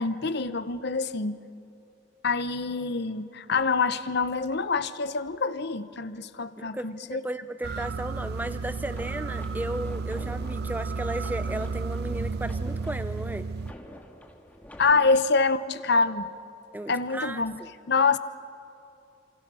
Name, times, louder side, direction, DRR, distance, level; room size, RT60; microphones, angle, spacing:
voice 1, 0.0-1.4 2.2-7.2 14.8-16.3 16.9-17.5 17.9-18.2, left 4 dB, 60° left, 13 dB, 0.9 m, -26 dB
voice 2, 6.6-13.5 16.7-17.4, right 1 dB, 10° right, 12 dB, 0.5 m, -35 dB
sound 1, 7.6-13.7, right 4 dB, 60° right, 0.5 m, -32 dB
sound 2, 8.9-15.6, equal, 10° left, 1.9 m, -47 dB
28.5 x 27.5 x 6.2 m, 2.6 s
head